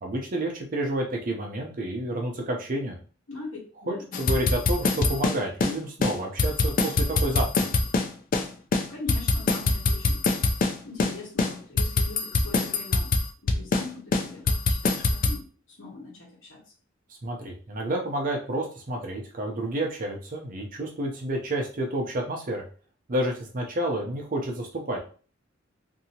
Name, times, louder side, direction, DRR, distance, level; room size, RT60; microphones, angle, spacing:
voice 1, 0.0-3.0 3.9-7.7 17.2-22.6 23.1-25.0, right 1 dB, 45° right, 1 dB, 0.6 m, -30 dB
voice 2, 3.3-4.0 8.9-10.2 10.8-13.1 13.4-16.6, left 3 dB, 75° left, -4 dB, 1.1 m, -41 dB
sound 1, 4.1-5.7 6.0-6.1 6.4-8.5 8.7-10.7 11.0-11.1 11.4-13.9 14.1-15.4, left 3 dB, 45° left, 0.4 m, -23 dB
2.8 x 2.6 x 2.8 m, 0.40 s
head